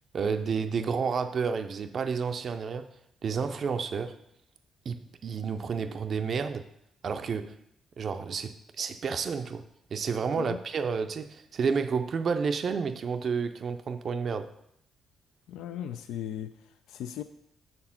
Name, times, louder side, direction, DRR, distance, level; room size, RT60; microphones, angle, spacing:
voice 1, 0.1-2.9 3.2-4.2 4.9-6.6 7.0-7.6 8.0-9.6 9.9-14.5, right 5 dB, 50° right, 8 dB, 0.5 m, -30 dB
voice 2, 15.5-17.2, left 10 dB, 85° left, 9 dB, 0.3 m, -37 dB
6.7 x 4.3 x 5.8 m, 0.76 s
cardioid pair, 90°, 0 cm